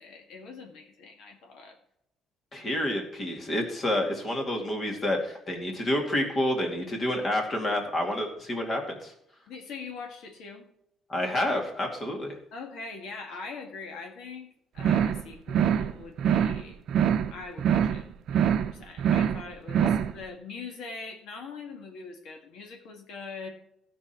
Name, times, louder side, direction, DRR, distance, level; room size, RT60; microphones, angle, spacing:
voice 1, 0.0-1.8 9.5-10.7 12.5-14.5 14.7-16.8 17.3-23.5, left 4 dB, 70° left, 3 dB, 1.8 m, -42 dB
voice 2, 2.5-9.1 11.1-12.4 19.8-19.9, left 1 dB, 30° left, 2 dB, 2.3 m, -29 dB
sound 1, 14.8-15.2 15.5-15.9 16.2-16.6 16.9-17.3 17.6-18.0 18.3-18.7 19.0-19.4 19.7-20.1, right 9 dB, 55° right, 0.7 m, -24 dB
15.5 x 6.2 x 4.4 m, 0.76 s
cardioid pair, 155°, 0 cm